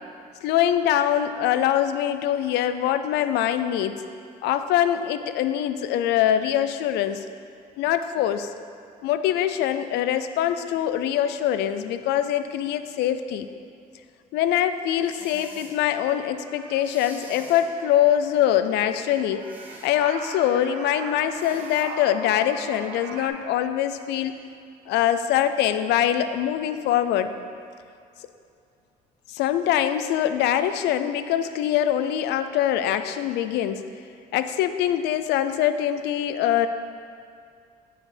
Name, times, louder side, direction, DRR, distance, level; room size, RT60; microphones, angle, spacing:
voice 1, 0.4-4.0 4.4-7.3 7.8-8.5 9.0-13.5 14.3-19.5 19.8-24.4 24.9-27.3 29.3-33.8 34.3-36.7, left 11 dB, 85° left, 10 dB, 0.5 m, -23 dB
sound 1, 15.0-15.8 16.8-17.7 19.4-19.9 21.3-21.9, right 1 dB, 10° right, 1.3 m, -45 dB
sound 2, 16.0-23.3, right 4 dB, 75° right, 0.9 m, -41 dB
9.4 x 4.8 x 5.0 m, 2.4 s
cardioid pair, 110°, 17 cm